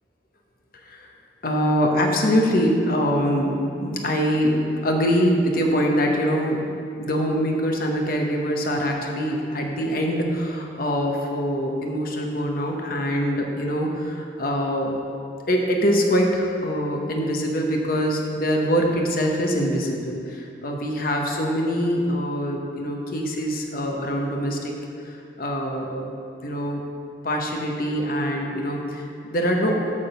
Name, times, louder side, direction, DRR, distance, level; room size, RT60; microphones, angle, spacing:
voice 1, 1.4-15.0 15.5-24.7 25.0-26.1 26.4-26.8 27.2-29.8, equal, 50° left, 1 dB, 0.9 m, -24 dB
9.0 x 3.7 x 6.8 m, 2.6 s
head